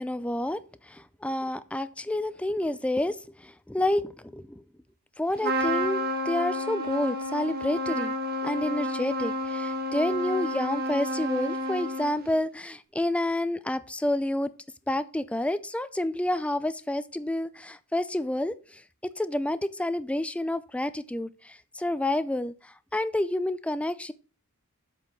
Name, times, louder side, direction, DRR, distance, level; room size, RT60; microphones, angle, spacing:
voice 1, 0.0-4.6 5.2-8.1 8.4-14.5 14.9-24.1, left 1 dB, 5° left, 14 dB, 0.3 m, -29 dB
Trumpet, 5.4-12.3, equal, 45° right, 1.3 m, -30 dB
7.6 x 4.7 x 5.3 m, 0.36 s
head